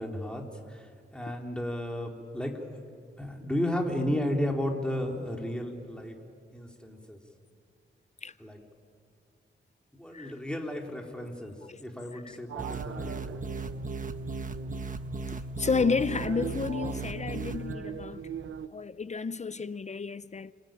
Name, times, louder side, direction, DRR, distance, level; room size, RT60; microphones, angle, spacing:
voice 1, 0.0-2.8 3.2-6.2 6.5-7.2 8.4-8.6 9.9-13.5, left 1 dB, 5° left, 3.7 m, -33 dB
sound 1, 12.5-18.7, right 8 dB, 85° right, 0.9 m, -41 dB
sound 2, 12.6-17.7, right 3 dB, 40° right, 1.3 m, -37 dB
voice 2, 15.6-18.2 18.7-20.5, left 5 dB, 35° left, 0.6 m, -31 dB
30.0 x 22.0 x 9.1 m
wide cardioid pair, 90°, 20 cm